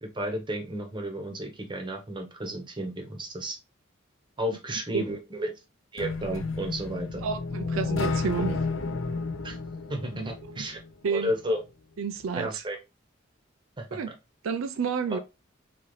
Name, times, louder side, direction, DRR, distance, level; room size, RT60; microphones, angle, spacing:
voice 1, 0.0-3.6 4.4-5.5 5.9-7.3 9.4-9.6 9.9-10.8 11.1-11.6 12.3-12.8 13.8-14.0 15.1-15.2, equal, 25° right, 0.9 m, -32 dB
sound 1, 6.0-10.9, left 3 dB, 75° left, 0.6 m, -31 dB
voice 2, 7.2-8.6 10.1-10.6 11.0-11.3 12.0-12.6 13.9-14.1 14.4-15.2, right 5 dB, 85° right, 0.4 m, -30 dB
4.0 x 2.8 x 3.1 m
head